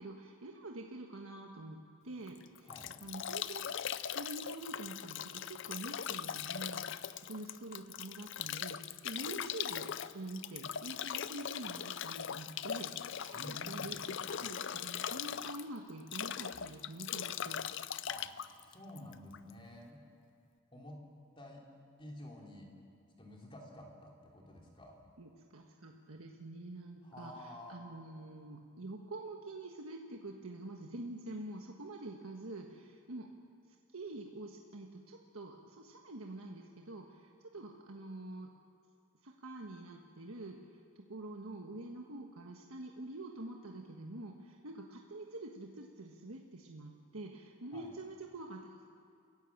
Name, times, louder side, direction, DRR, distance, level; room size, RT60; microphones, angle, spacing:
voice 1, 0.0-2.7 3.0-17.6 25.2-33.3 33.9-38.5 39.2-40.6 40.9-48.9, right 2 dB, 80° right, 1 dB, 1.5 m, -46 dB
Bathtub (filling or washing) / Drip / Trickle dribble, 2.3-19.5, left 9 dB, 55° left, 0.5 m, -40 dB
voice 2, 13.3-14.0 18.0-18.3 18.6-20.0 20.7-21.0 21.4-21.6 22.0-22.7 23.2-25.0 27.0-27.8 47.7-47.9, left 1 dB, 25° left, -1 dB, 3.3 m, -50 dB
28.5 x 16.0 x 7.3 m, 2.4 s
head